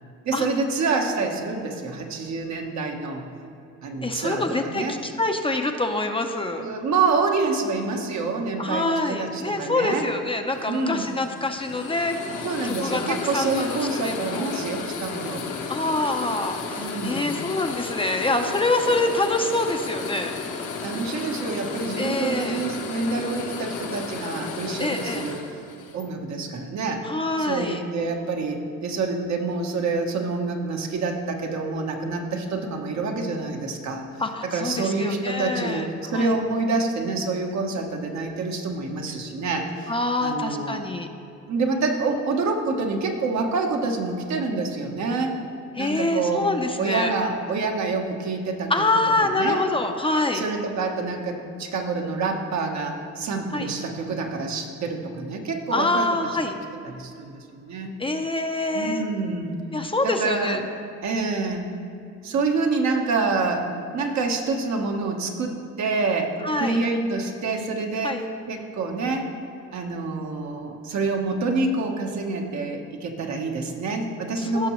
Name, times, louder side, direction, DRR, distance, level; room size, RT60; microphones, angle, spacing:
voice 1, 0.2-3.2 3.8-5.0 6.6-10.1 10.7-11.1 12.4-15.4 16.8-17.2 20.8-25.5 25.9-27.0 27.4-34.0 34.4-39.9 40.2-40.8 41.5-45.4 45.8-46.5 46.8-48.7 49.3-49.7 50.3-56.5 56.8-58.0 58.7-59.5 60.0-60.6 61.0-61.6 62.2-69.3 69.7-74.7, right 3 dB, 65° right, 2 dB, 1.2 m, -27 dB
voice 2, 4.0-6.6 8.6-14.4 15.7-20.4 22.0-22.6 24.8-25.3 27.0-27.8 34.2-35.9 36.1-36.3 39.1-39.2 39.9-41.1 45.8-47.1 48.7-50.4 53.5-53.7 55.7-56.6 58.0-59.0 59.7-60.6 66.4-66.8 68.0-68.2 74.4-74.7, left 2 dB, 15° left, 4 dB, 0.6 m, -26 dB
sound 1, 10.5-26.0, left 4 dB, 90° left, 1.0 m, -33 dB
16.0 x 6.0 x 3.1 m, 2.6 s
cardioid pair, 90°, 30 cm